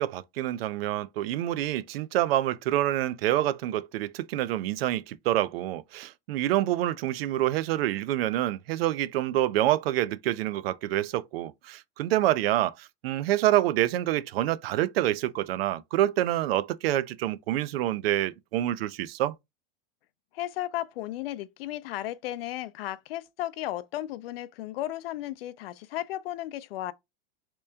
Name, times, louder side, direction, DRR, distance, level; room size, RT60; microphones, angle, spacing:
voice 1, 0.0-19.3, right 13 dB, 90° right, 0.5 m, -27 dB
voice 2, 20.3-26.9, left 14 dB, 85° left, 0.5 m, -34 dB
3.3 x 3.0 x 3.3 m
supercardioid pair, 160°, 29 cm